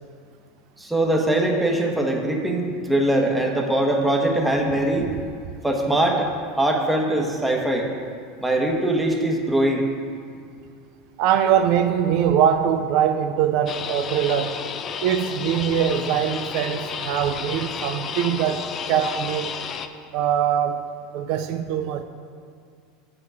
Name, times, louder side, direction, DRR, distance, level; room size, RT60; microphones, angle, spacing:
voice 1, 0.8-5.1 5.6-6.3 6.6-7.9 8.4-9.8, right 1 dB, 5° right, 1 dB, 1.2 m, -22 dB
voice 2, 11.2-14.6 15.0-19.5 20.1-20.9 21.1-22.0, right 9 dB, 60° right, 7 dB, 0.5 m, -22 dB
sound 1, 13.7-19.9, left 7 dB, 35° left, 0.5 m, -32 dB
7.7 x 5.9 x 7.6 m, 2.3 s
supercardioid pair, 125°, 0 cm